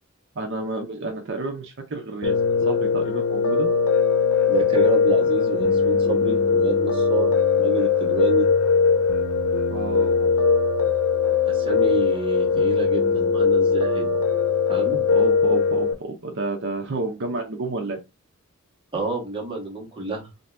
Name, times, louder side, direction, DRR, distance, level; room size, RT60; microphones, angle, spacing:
voice 1, 0.4-3.7 9.7-10.3 14.9-18.0, right 2 dB, 60° right, 3 dB, 0.7 m, -30 dB
Piano, 2.2-15.9, left 5 dB, 80° left, 0.8 m, -20 dB
voice 2, 4.5-7.3 7.6-8.5 11.5-14.1 14.7-15.0 18.9-20.3, right 3 dB, 25° right, -1 dB, 1.3 m, -28 dB
3.5 x 2.7 x 3.3 m, 0.24 s
head